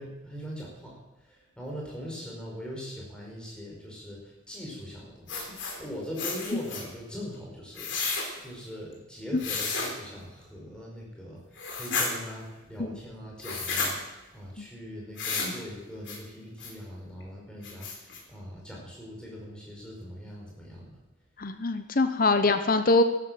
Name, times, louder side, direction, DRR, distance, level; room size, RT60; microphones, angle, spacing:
voice 1, 0.0-8.1 8.4-14.0 14.3-21.0, equal, 5° left, -3 dB, 4.8 m, -41 dB
sound 1, 5.3-5.8 6.2-6.8 7.7-8.3 9.4-9.9 11.6-12.1 13.4-13.9 15.2-15.5 16.1-16.2 16.6-16.7 17.2-17.3 17.6-18.2, left 4 dB, 60° left, 3.8 m, -31 dB
voice 2, 21.4-23.0, left 2 dB, 40° left, 9 dB, 0.7 m, -23 dB
13.5 x 12.0 x 7.5 m, 1.1 s
head